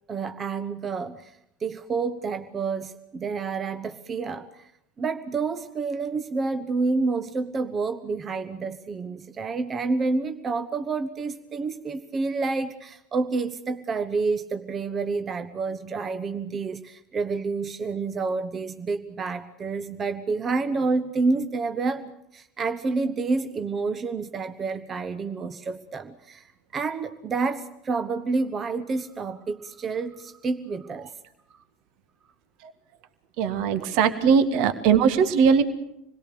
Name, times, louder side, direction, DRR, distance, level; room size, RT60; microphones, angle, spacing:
voice 1, 0.1-4.7 5.0-31.1 31.5-31.6, right 4 dB, 30° right, 11 dB, 1.2 m, -29 dB
voice 2, 33.4-35.6, right 6 dB, 55° right, 12 dB, 1.7 m, -20 dB
27.5 x 21.5 x 6.8 m, 0.80 s
figure-of-eight pair, 70°, 0 cm